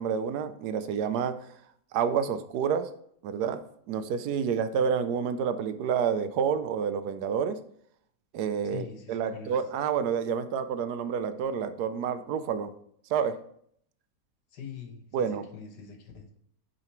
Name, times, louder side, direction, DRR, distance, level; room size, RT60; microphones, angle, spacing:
voice 1, 0.0-1.4 1.9-2.9 3.2-3.6 3.9-7.6 8.3-12.7 13.1-13.4 15.1-15.5, right 7 dB, 75° right, 10 dB, 1.1 m, -29 dB
voice 2, 8.6-9.6 14.5-16.3, left 7 dB, 75° left, 5 dB, 1.7 m, -43 dB
8.6 x 4.0 x 4.5 m, 0.67 s
omnidirectional pair, 1.8 m